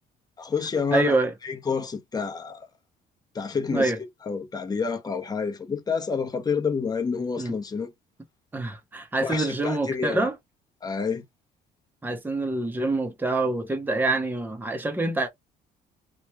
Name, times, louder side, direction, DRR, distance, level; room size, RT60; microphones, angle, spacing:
voice 1, 0.4-1.2 1.4-2.7 3.3-3.9 4.3-7.9 9.2-10.3 10.8-11.2, left 5 dB, 25° left, 0.8 m, -28 dB
voice 2, 0.9-1.3 3.7-4.0 7.4-7.5 8.5-10.3 12.0-15.3, right 2 dB, 10° right, 0.7 m, -26 dB
3.0 x 2.2 x 3.1 m
cardioid pair, 110°, 17 cm